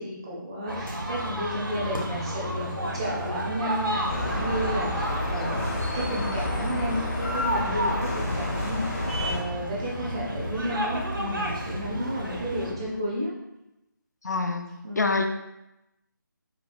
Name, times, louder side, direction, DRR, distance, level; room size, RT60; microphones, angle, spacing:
voice 1, 0.0-13.3 14.8-15.1, equal, 15° right, -5 dB, 0.4 m, -32 dB
sound 1, 0.7-12.7, right 1 dB, 80° right, 0.7 m, -33 dB
sound 2, 4.1-9.4, left 2 dB, 40° left, 0.7 m, -30 dB
sound 3, 7.6-13.0, left 1 dB, 75° left, 1.4 m, -38 dB
voice 2, 14.2-14.6 15.0-15.2, left 3 dB, 55° left, 5 dB, 0.4 m, -25 dB
5.1 x 2.2 x 2.4 m, 0.91 s
figure-of-eight pair, 155°, 11 cm